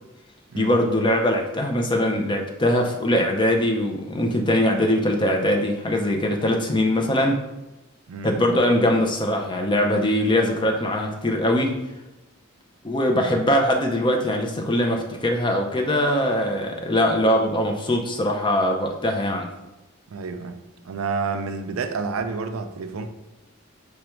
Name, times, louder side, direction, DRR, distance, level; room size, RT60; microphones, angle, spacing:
voice 1, 0.5-7.4 8.2-11.8 12.8-19.5, left 1 dB, 25° left, 2 dB, 0.5 m, -22 dB
voice 2, 8.1-8.5 13.1-13.4 20.1-20.6 20.8-23.1, right 4 dB, 85° right, 8 dB, 0.4 m, -29 dB
5.0 x 2.2 x 4.4 m, 1.0 s
head